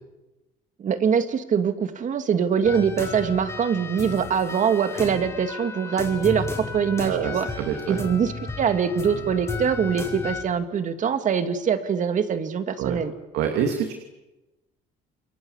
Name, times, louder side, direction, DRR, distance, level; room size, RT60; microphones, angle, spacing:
voice 1, 0.8-7.5 7.9-13.1, right 7 dB, 50° right, 9 dB, 2.4 m, -23 dB
sound 1, 2.6-10.4, left 4 dB, 15° left, 5.3 m, -34 dB
voice 2, 7.0-8.0 12.8-13.0 13.3-13.9, right 8 dB, 90° right, 4 dB, 2.9 m, -26 dB
29.0 x 22.5 x 8.2 m, 1.0 s
cardioid pair, 110°, 17 cm